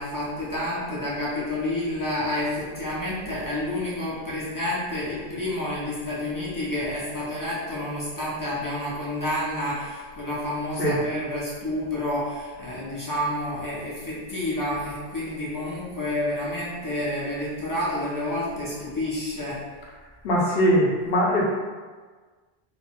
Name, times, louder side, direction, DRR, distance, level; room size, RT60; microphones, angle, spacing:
voice 1, 0.0-19.6, left 1 dB, 25° left, -8 dB, 0.4 m, -29 dB
voice 2, 20.2-21.4, equal, 70° left, -3 dB, 0.8 m, -21 dB
2.4 x 2.1 x 2.9 m, 1.4 s
omnidirectional pair, 1.0 m